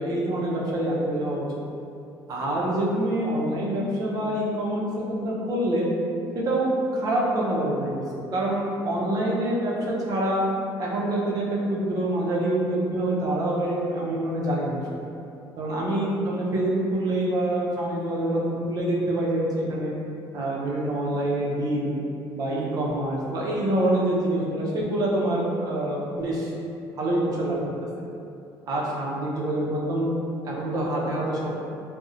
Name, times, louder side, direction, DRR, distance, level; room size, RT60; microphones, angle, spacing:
voice 1, 0.0-1.5 2.3-5.9 6.3-7.9 8.3-10.4 10.8-14.8 15.6-19.9 20.3-21.9 22.3-26.5 26.9-27.6 28.7-30.1 30.4-31.5, right 1 dB, 45° right, -4 dB, 0.5 m, -26 dB
2.6 x 2.0 x 2.4 m, 2.6 s
cardioid pair, 120°, 8 cm